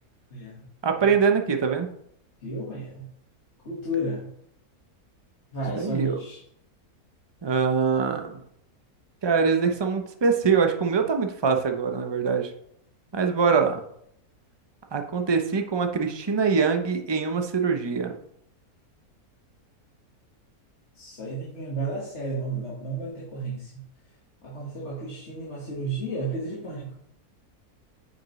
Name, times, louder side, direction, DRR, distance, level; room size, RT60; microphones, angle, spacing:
voice 1, 0.3-0.7 1.0-1.2 2.4-3.1 3.6-4.3 5.5-6.4 20.9-23.8 24.4-27.0, right 2 dB, 45° left, -6 dB, 1.9 m, -32 dB
voice 2, 0.8-1.9 5.8-6.1 7.4-8.4 9.2-12.5 13.1-13.8 14.9-18.1, right 5 dB, 35° right, 5 dB, 0.4 m, -23 dB
9.4 x 5.4 x 3.1 m, 0.71 s
omnidirectional pair, 1.6 m